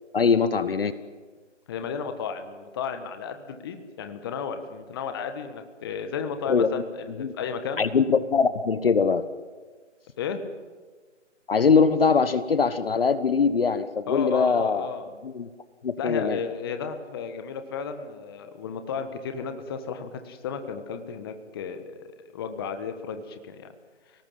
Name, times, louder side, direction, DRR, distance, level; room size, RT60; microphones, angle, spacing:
voice 1, 0.1-0.9 6.5-6.7 7.2-7.3 7.8-9.2 11.5-14.9 15.2-15.5 15.8-16.4, left 5 dB, 50° left, 13 dB, 1.2 m, -22 dB
voice 2, 1.7-7.8 10.2-10.4 14.1-15.1 16.0-23.7, left 6 dB, 20° left, 7 dB, 1.4 m, -33 dB
29.5 x 18.5 x 7.6 m, 1.4 s
figure-of-eight pair, 155°, 37 cm